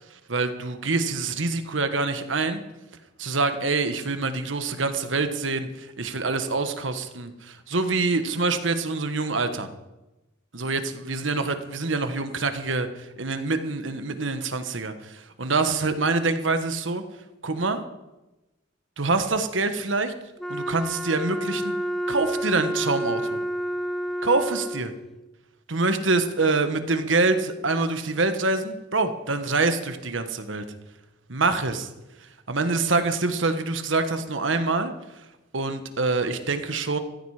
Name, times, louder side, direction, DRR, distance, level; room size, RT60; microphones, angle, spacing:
voice 1, 0.3-2.6 3.2-9.7 10.5-17.0 17.4-17.8 19.0-20.1 20.5-21.7 22.1-23.4 24.2-24.9 25.7-30.6 31.3-31.9 32.5-34.9 35.5-37.0, right 3 dB, 75° right, 9 dB, 1.4 m, -25 dB
Wind instrument woodwind instrument, 20.4-25.1, equal, ahead, 0.8 m, -29 dB
15.5 x 14.5 x 5.0 m, 1.0 s
head